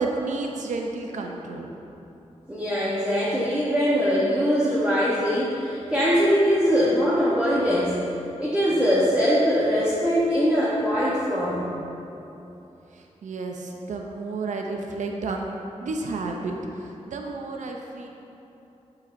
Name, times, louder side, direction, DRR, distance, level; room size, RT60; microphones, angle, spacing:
voice 1, 0.0-1.7 12.9-15.6 15.8-18.1, right 3 dB, 80° right, 2 dB, 0.6 m, -31 dB
voice 2, 2.5-8.0 8.4-11.7, equal, 10° right, -8 dB, 0.9 m, -22 dB
7.7 x 7.2 x 2.6 m, 3.0 s
wide cardioid pair, 125°, 12 cm